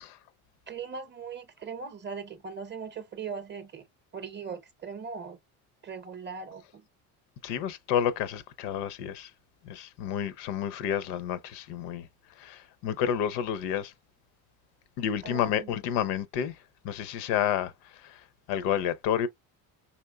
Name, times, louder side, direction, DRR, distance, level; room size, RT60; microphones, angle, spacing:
voice 1, 0.7-3.8 4.1-5.4 5.8-6.9 15.2-15.7, right 5 dB, 25° right, 0.6 m, -39 dB
voice 2, 7.4-9.3 9.6-12.1 12.4-13.9 15.0-16.6 16.8-18.2 18.5-19.3, left 9 dB, 80° left, 0.7 m, -30 dB
4.3 x 3.1 x 2.2 m
supercardioid pair, 105°, 40 cm